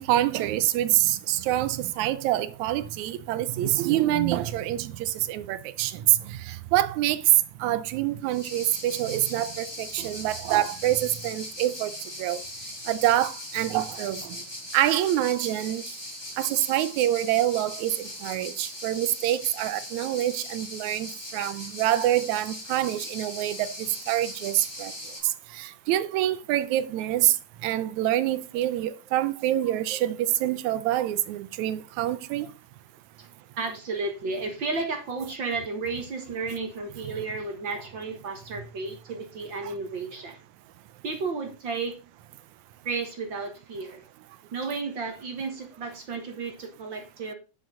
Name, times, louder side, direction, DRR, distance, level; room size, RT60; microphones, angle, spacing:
voice 1, 0.0-7.2 7.6-11.9 12.2-12.4 12.9-14.4 14.7-15.8 16.4-23.7 24.1-24.9 25.2-27.4 27.6-32.5, right 13 dB, 75° right, 2.0 m, -26 dB
sound 1, 8.3-25.2, left 1 dB, 10° left, 2.1 m, -39 dB
voice 2, 29.6-30.0 33.2-33.3 33.6-40.4 41.0-42.0 42.9-44.0 44.5-47.3, right 4 dB, 45° right, 1.7 m, -33 dB
9.6 x 7.8 x 3.8 m
omnidirectional pair, 3.6 m